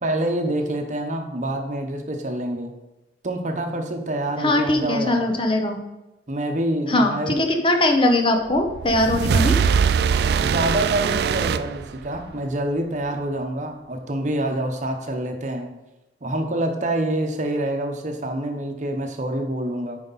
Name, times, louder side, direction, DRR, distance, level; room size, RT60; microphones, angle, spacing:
voice 1, 0.0-2.7 3.2-5.3 6.3-7.4 10.4-15.7 16.2-20.0, right 1 dB, 45° right, 4 dB, 0.9 m, -26 dB
voice 2, 4.4-5.8 6.9-9.6, left 1 dB, 30° left, 4 dB, 0.8 m, -20 dB
sound 1, 8.6-12.4, right 6 dB, 60° right, 0.3 m, -22 dB
9.3 x 5.2 x 4.1 m, 1.0 s
head